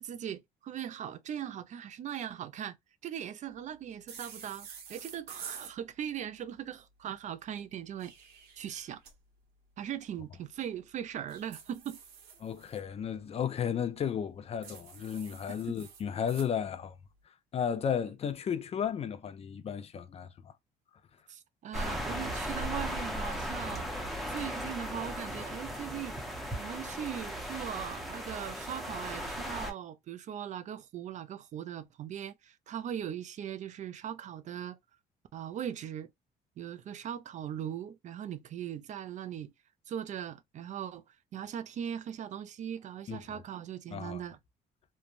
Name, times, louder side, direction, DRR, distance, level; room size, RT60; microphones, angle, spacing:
voice 1, 0.0-2.8 3.0-8.1 8.6-9.0 9.8-12.0 15.7-15.8 21.3-23.9 24.3-26.2 26.6-34.8 35.3-36.1 36.6-39.5 39.9-44.4, right 9 dB, 45° right, 0.4 m, -39 dB
sound 1, 4.1-5.7 7.8-9.1 11.3-12.8 14.6-16.5, right 7 dB, 70° right, 1.0 m, -48 dB
voice 2, 12.4-17.0 17.3-20.5 43.1-43.2 43.9-44.2, left 8 dB, 35° left, 0.4 m, -34 dB
sound 2, 21.7-29.7, equal, ahead, 0.8 m, -37 dB
3.1 x 2.1 x 2.5 m
cardioid pair, 110°, 17 cm